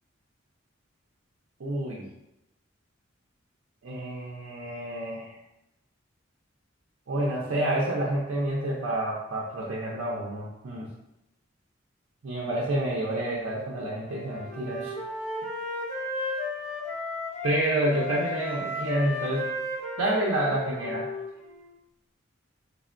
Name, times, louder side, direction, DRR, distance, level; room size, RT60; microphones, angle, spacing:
voice 1, 1.6-2.1 3.8-5.4 7.1-10.9 12.2-14.9 17.4-19.5 20.0-21.1, right 1 dB, 85° right, -6 dB, 0.5 m, -28 dB
Wind instrument woodwind instrument, 14.0-17.6 17.9-21.7, left 2 dB, 30° left, 0.9 m, -34 dB
3.4 x 2.2 x 2.4 m, 0.88 s
head